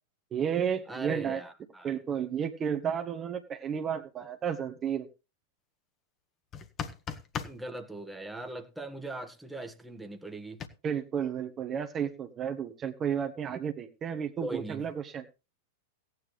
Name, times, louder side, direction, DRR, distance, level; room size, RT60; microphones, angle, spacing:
voice 1, 0.3-1.4 1.8-5.1 10.8-15.2, right 8 dB, 25° right, 1.5 m, -32 dB
voice 2, 0.9-2.0 7.4-10.6 14.4-14.8, right 2 dB, 5° right, 1.6 m, -40 dB
sound 1, 6.5-7.6 10.6-10.7, left 7 dB, 30° left, 1.6 m, -36 dB
16.5 x 9.8 x 3.3 m
figure-of-eight pair, 95°, 0 cm